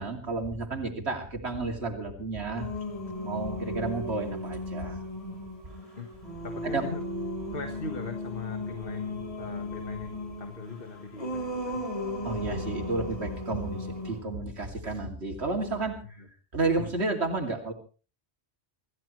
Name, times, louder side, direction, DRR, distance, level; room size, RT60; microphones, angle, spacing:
voice 1, 0.0-2.7 3.2-5.0 6.6-6.8 12.2-16.0 16.5-17.7, right 3 dB, 80° right, 2 dB, 3.0 m, -31 dB
Singing, 2.6-14.2, left 1 dB, 30° left, 4.7 m, -36 dB
voice 2, 6.4-7.0 7.5-11.8, left 4 dB, 55° left, 6 dB, 1.7 m, -40 dB
26.0 x 14.5 x 3.2 m, 0.36 s
omnidirectional pair, 1.1 m